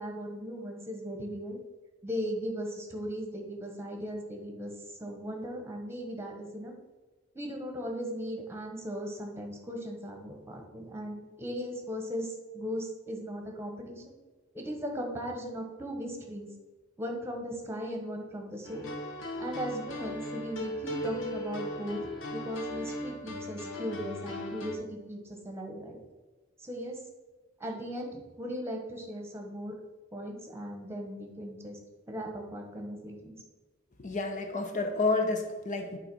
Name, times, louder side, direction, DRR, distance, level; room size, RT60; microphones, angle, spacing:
voice 1, 0.0-1.6 2.0-4.7 5.0-6.7 7.3-14.0 14.5-16.5 17.0-18.9 19.4-22.0 22.3-26.0 26.6-27.0 27.6-29.8 30.1-31.8 32.1-33.4, equal, 15° right, 2 dB, 1.3 m, -37 dB
sound 1, 18.6-24.8, left 1 dB, 80° left, 1.1 m, -38 dB
voice 2, 34.0-36.0, left 3 dB, 40° left, 6 dB, 0.9 m, -30 dB
8.8 x 3.7 x 5.4 m, 1.2 s
head